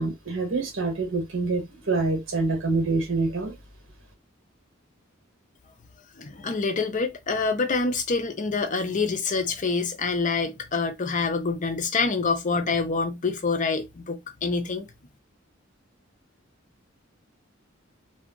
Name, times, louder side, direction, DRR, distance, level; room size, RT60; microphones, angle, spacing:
voice 1, 0.0-3.5, right 3 dB, 75° right, 1.2 m, -26 dB
voice 2, 6.2-14.9, left 4 dB, 40° left, 0.6 m, -26 dB
2.4 x 2.2 x 3.7 m
head